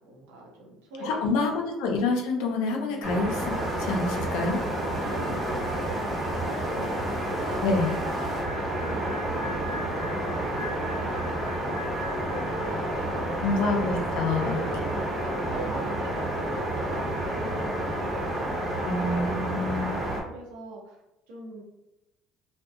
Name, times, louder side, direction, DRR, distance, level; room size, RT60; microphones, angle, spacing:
voice 1, 0.0-1.6 2.9-3.2 4.8-10.9 11.1-13.8 14.3-19.8 20.2-21.0 21.3-21.6, right 1 dB, 90° right, -1 dB, 0.7 m, -42 dB
voice 2, 1.0-4.6 7.6-7.9 13.4-14.6 18.8-20.0, left 3 dB, 80° left, 2 dB, 0.5 m, -27 dB
sound 1, 3.0-20.2, right 1 dB, 40° right, 0.9 m, -30 dB
sound 2, 3.4-8.4, left 2 dB, 30° left, 0.5 m, -43 dB
sound 3, 8.4-13.2 13.4-13.7, left 1 dB, 15° right, 0.6 m, -43 dB
2.6 x 2.1 x 2.4 m, 0.93 s
supercardioid pair, 90°, 0 cm